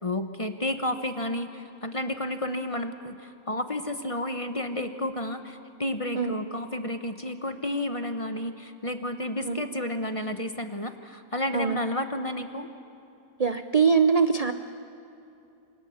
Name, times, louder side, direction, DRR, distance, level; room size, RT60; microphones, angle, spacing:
voice 1, 0.0-12.7, left 1 dB, 25° left, 7 dB, 0.9 m, -31 dB
voice 2, 13.4-14.5, right 5 dB, 50° right, 9 dB, 0.4 m, -22 dB
28.5 x 25.0 x 7.2 m, 2.7 s
omnidirectional pair, 1.7 m